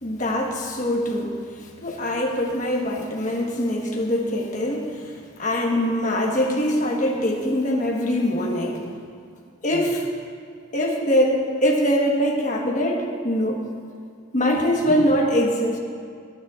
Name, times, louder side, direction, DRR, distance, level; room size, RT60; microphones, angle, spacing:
voice 1, 0.0-8.9 9.6-10.1 10.7-13.7 14.3-15.8, equal, 35° left, -1 dB, 1.4 m, -23 dB
18.5 x 10.5 x 2.5 m, 2.2 s
head